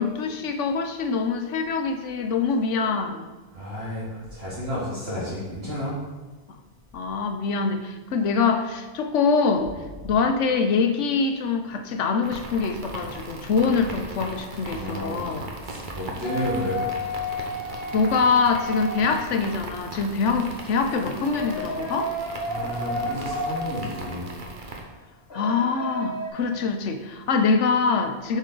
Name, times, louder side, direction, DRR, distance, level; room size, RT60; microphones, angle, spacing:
voice 1, 0.0-3.3 6.5-6.6 6.9-15.5 17.9-22.1 25.3-28.4, left 5 dB, 80° left, 7 dB, 1.1 m, -24 dB
voice 2, 3.5-6.0 14.7-15.3 15.6-16.8 22.4-24.2, left 1 dB, 60° right, -8 dB, 2.4 m, -31 dB
sound 1, 12.2-24.8, right 2 dB, 45° right, 1.1 m, -38 dB
sound 2, 16.2-19.7 20.9-24.3 25.3-26.3, equal, 55° left, 1.9 m, -32 dB
8.2 x 5.5 x 3.9 m, 1.2 s
omnidirectional pair, 1.2 m